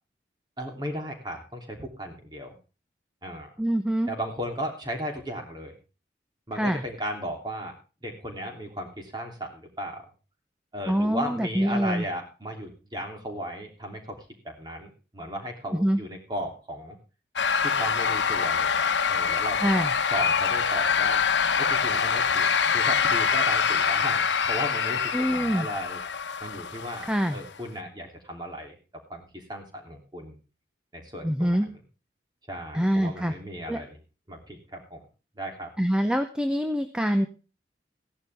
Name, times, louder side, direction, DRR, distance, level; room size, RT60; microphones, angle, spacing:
voice 1, 0.6-2.6 3.2-3.5 4.1-5.8 6.5-7.7 8.0-10.0 10.7-14.2 14.4-17.0 17.6-21.2 21.6-22.5 22.7-26.0 26.4-28.8 29.1-30.3 30.9-31.7 32.5-34.0 34.3-35.0 35.3-35.7, equal, 25° right, 2 dB, 3.1 m, -36 dB
voice 2, 3.6-4.1 6.5-6.8 10.9-12.0 15.7-16.0 19.6-19.9 25.1-25.7 27.1-27.4 31.2-31.7 32.7-33.3 33.7-33.8 35.8-37.3, equal, 5° right, 8 dB, 0.7 m, -25 dB
sound 1, 17.4-27.5, left 6 dB, 85° left, 1.1 m, -25 dB
16.0 x 11.0 x 3.4 m, 0.33 s
head